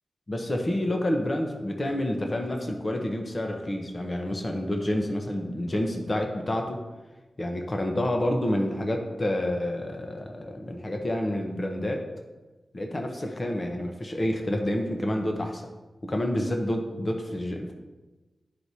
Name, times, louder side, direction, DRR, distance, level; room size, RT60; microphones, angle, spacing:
voice 1, 0.3-6.8 7.4-12.0 12.7-15.6 16.0-17.7, left 1 dB, 25° left, 3 dB, 0.7 m, -28 dB
11.5 x 4.7 x 2.8 m, 1.2 s
wide cardioid pair, 165°, 0 cm